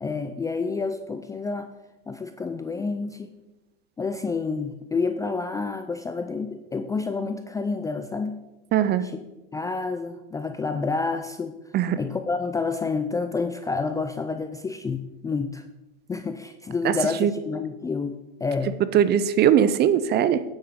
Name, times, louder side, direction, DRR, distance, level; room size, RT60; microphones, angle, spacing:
voice 1, 0.0-1.7 2.1-3.3 4.0-8.4 9.0-9.1 9.5-11.6 12.0-15.6 16.1-18.8, left 4 dB, 10° left, 8 dB, 0.4 m, -29 dB
voice 2, 8.7-9.1 11.7-12.0 16.8-17.3 18.9-20.4, right 9 dB, 30° right, 14 dB, 0.6 m, -20 dB
9.8 x 7.8 x 3.7 m, 0.99 s
hypercardioid pair, 110°, 32 cm